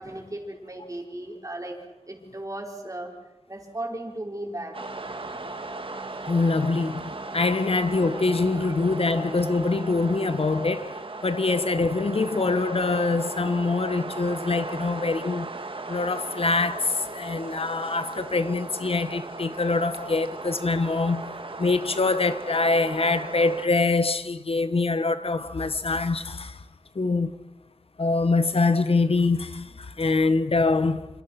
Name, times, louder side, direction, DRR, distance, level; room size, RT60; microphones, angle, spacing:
voice 1, 0.0-1.8 2.1-3.1 3.5-4.8 7.5-7.7 9.0-9.1, right 1 dB, 35° right, 5.5 m, -36 dB
sound 1, 4.7-23.7, right 3 dB, 65° right, 2.2 m, -37 dB
voice 2, 6.2-15.5 15.9-26.6 26.9-27.5 28.0-31.1, left 3 dB, 85° left, 1.4 m, -24 dB
27.5 x 27.0 x 6.0 m
wide cardioid pair, 70°, 10 cm